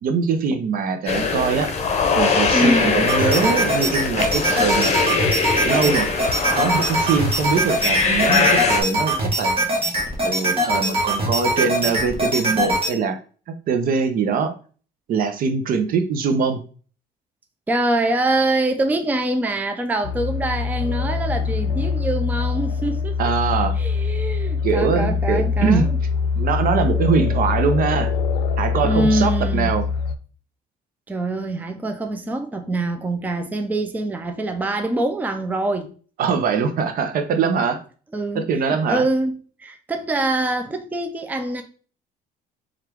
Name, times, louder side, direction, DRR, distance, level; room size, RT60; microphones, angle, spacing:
voice 1, 0.0-1.7 2.2-4.9 5.6-6.1 6.5-9.5 10.2-13.2 13.7-14.5 15.1-16.6 23.2-23.7 24.6-25.9 26.4-28.1 28.6-29.9 36.2-37.8 38.3-39.0, right 5 dB, 60° right, 0.7 m, -22 dB
sound 1, 1.1-8.8, left 4 dB, 40° left, 0.7 m, -22 dB
voice 2, 2.5-3.1 17.7-23.3 23.8-26.0 28.8-29.7 31.1-35.9 38.1-41.6, right 2 dB, 10° right, 0.5 m, -24 dB
sound 2, 3.1-12.9, right 1 dB, 35° right, 1.4 m, -22 dB
sound 3, 20.0-30.2, left 5 dB, 70° left, 0.4 m, -23 dB
4.4 x 2.5 x 3.4 m
cardioid pair, 110°, 17 cm